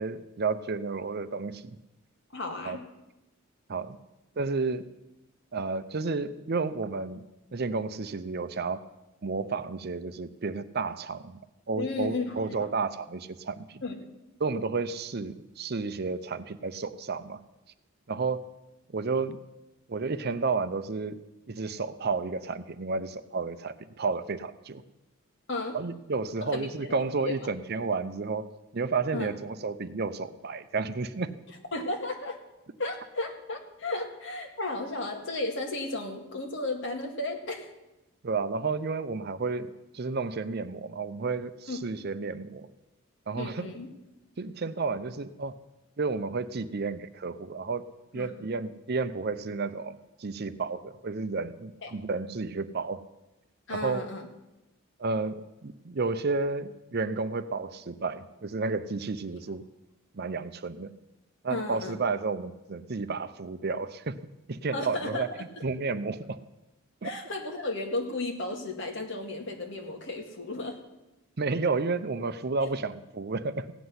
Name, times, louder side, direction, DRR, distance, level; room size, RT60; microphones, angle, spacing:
voice 1, 0.0-1.8 2.6-2.8 3.7-4.0 4.4-4.9 5.5-8.9 9.2-11.4 11.7-13.8 14.4-17.4 18.1-18.5 18.9-19.4 19.9-21.2 21.5-24.8 25.7-31.4 38.2-42.7 43.3-43.7 44.4-45.6 46.0-47.9 48.1-53.0 53.7-54.1 55.0-59.7 60.1-60.9 61.4-64.2 64.5-65.3 65.6-66.4 67.0-67.1 71.4-73.7, right 4 dB, 50° right, 12 dB, 0.6 m, -31 dB
voice 2, 2.3-2.8 11.7-12.5 13.8-14.0 25.5-25.8 26.5-26.9 27.2-27.3 29.1-29.3 31.7-32.4 32.8-37.7 41.7-41.8 43.4-43.9 48.1-48.3 51.8-51.9 53.7-54.3 61.5-61.9 64.7-65.2 67.0-70.8 72.6-72.7, left 2 dB, 60° left, 3 dB, 2.0 m, -34 dB
16.5 x 6.1 x 9.6 m, 0.97 s
head